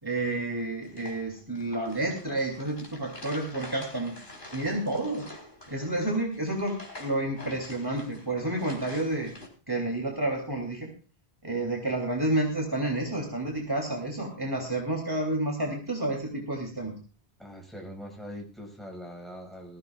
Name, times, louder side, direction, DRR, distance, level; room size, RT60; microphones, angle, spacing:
voice 1, 0.0-4.2 4.5-5.2 5.7-9.3 9.7-10.9 11.4-16.9, right 2 dB, 20° right, 1 dB, 3.1 m, -30 dB
sound 1, 0.8-9.5, left 1 dB, 50° left, 4.4 m, -47 dB
voice 2, 17.4-19.8, equal, ahead, 0 dB, 5.9 m, -42 dB
20.5 x 15.5 x 2.4 m, 0.35 s
omnidirectional pair, 1.1 m